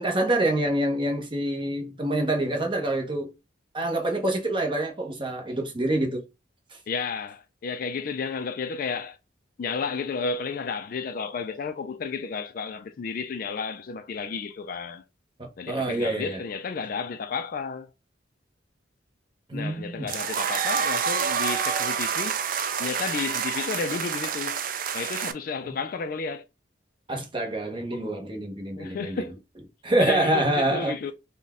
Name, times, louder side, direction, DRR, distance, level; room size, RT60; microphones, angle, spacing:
voice 1, 0.0-3.3 3.7-6.2 6.7-6.8 15.4-16.4 19.5-20.1 25.6-25.7 27.1-29.2 29.8-31.0, right 1 dB, 25° right, 0.9 m, -26 dB
voice 2, 6.9-9.2 9.6-15.0 15.6-17.9 19.5-22.4 22.8-24.6 24.9-26.4 28.7-29.4 30.0-31.1, left 5 dB, 50° left, 0.3 m, -32 dB
sound 1, 20.1-25.3, right 7 dB, 45° right, 0.4 m, -28 dB
4.0 x 2.2 x 3.6 m
head